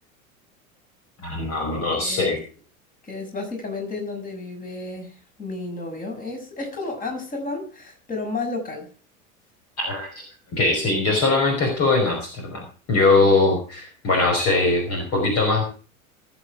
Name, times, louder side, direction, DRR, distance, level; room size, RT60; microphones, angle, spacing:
voice 1, 1.2-2.4 9.8-10.2 10.5-15.6, left 3 dB, 35° left, 2 dB, 5.2 m, -21 dB
voice 2, 1.9-2.3 3.0-8.9, left 3 dB, 20° left, 2 dB, 6.4 m, -32 dB
19.5 x 8.5 x 4.7 m, 0.38 s
figure-of-eight pair, 85°, 42 cm